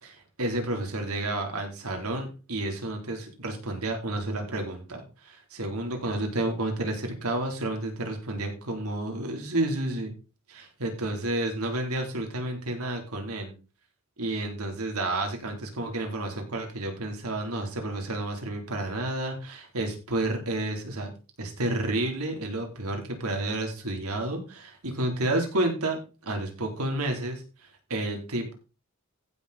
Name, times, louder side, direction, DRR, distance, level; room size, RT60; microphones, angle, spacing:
voice 1, 0.0-10.1 10.5-13.5 14.2-21.1 21.4-28.5, right 2 dB, 80° right, 3 dB, 3.4 m, -31 dB
15.0 x 6.5 x 4.1 m, 0.32 s
head